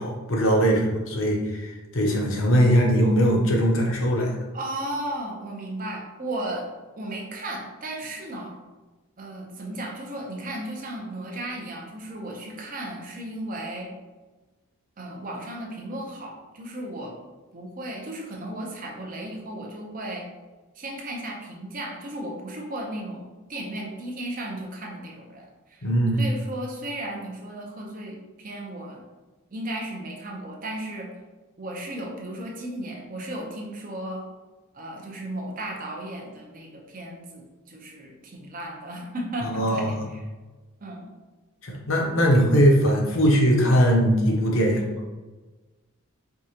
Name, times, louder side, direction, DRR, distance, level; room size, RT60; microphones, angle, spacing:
voice 1, 0.0-4.3 25.8-26.2 39.4-39.9 41.6-44.8, equal, 60° left, -1 dB, 0.7 m, -20 dB
voice 2, 4.5-6.7 7.0-8.6 9.2-13.9 15.0-17.2 17.5-20.3 20.7-25.9 26.2-29.0 29.5-31.1 31.6-34.2 34.7-40.3 40.8-41.1, right 1 dB, 40° right, 0 dB, 0.6 m, -35 dB
4.6 x 2.4 x 2.8 m, 1.2 s
head